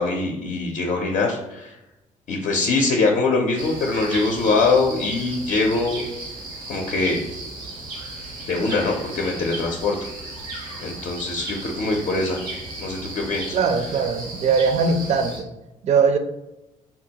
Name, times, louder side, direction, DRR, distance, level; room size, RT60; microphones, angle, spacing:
voice 1, 0.0-1.7 2.3-6.0 6.7-7.2 8.5-10.1 10.8-12.4 12.8-13.6, left 3 dB, 60° left, 0 dB, 0.5 m, -23 dB
sound 1, 3.6-15.4, right 2 dB, 90° right, 0.9 m, -35 dB
voice 2, 13.5-15.5 15.8-16.2, right 5 dB, 50° right, 7 dB, 0.4 m, -20 dB
3.7 x 2.2 x 2.7 m, 0.95 s
cardioid pair, 95°, 14 cm